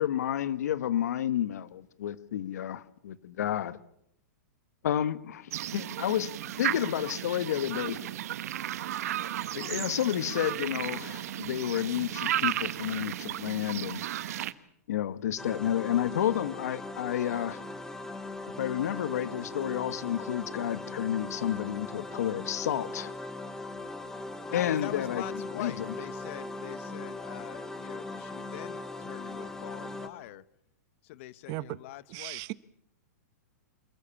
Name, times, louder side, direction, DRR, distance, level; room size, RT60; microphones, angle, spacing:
voice 1, 0.0-3.8 4.8-6.3 6.6-8.1 9.5-14.1 14.9-17.6 18.6-23.1 24.5-25.2 25.5-25.9, left 11 dB, 70° left, 1.3 m, -31 dB
sound 1, 5.5-14.5, right 12 dB, 65° right, 1.2 m, -34 dB
sound 2, 15.4-30.1, left 2 dB, 5° left, 2.2 m, -39 dB
voice 2, 24.5-30.4 31.0-32.4, left 17 dB, 50° left, 1.1 m, -43 dB
voice 3, 32.1-32.5, right 23 dB, 40° right, 0.8 m, -36 dB
27.0 x 14.5 x 8.6 m
hypercardioid pair, 140°, 9 cm